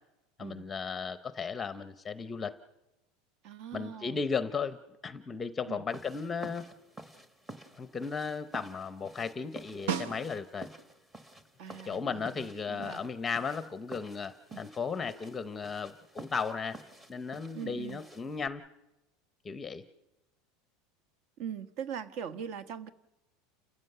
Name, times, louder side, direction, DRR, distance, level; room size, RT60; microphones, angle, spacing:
voice 1, 0.4-2.5 3.7-4.8 5.0-6.7 7.8-10.7 11.8-16.8 17.1-18.6 19.4-19.8, left 5 dB, 15° left, 12 dB, 0.7 m, -35 dB
voice 2, 3.4-4.2 5.7-5.8 11.6-13.0 14.5-14.6 17.5-18.0 21.4-22.9, right 8 dB, 50° right, 13 dB, 1.2 m, -41 dB
sound 1, 5.9-18.5, right 2 dB, 15° right, 1.3 m, -51 dB
Snare drum, 9.9-10.8 15.2-15.3, right 7 dB, 85° right, 1.0 m, -35 dB
29.5 x 15.0 x 6.7 m, 0.96 s
supercardioid pair, 155°, 0 cm